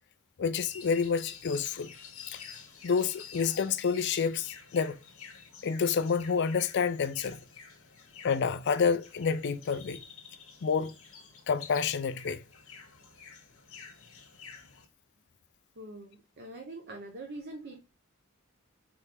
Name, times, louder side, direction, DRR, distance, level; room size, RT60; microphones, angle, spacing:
voice 1, 0.4-1.9 2.3-2.4 2.8-5.0 5.6-7.4 8.2-10.0 10.6-10.9 11.5-12.4, left 6 dB, 55° left, 0.4 m, -28 dB
sound 1, 0.6-14.8, left 6 dB, 75° left, 1.3 m, -50 dB
voice 2, 15.8-17.8, right 2 dB, 50° right, 0.7 m, -43 dB
4.2 x 3.4 x 3.4 m
head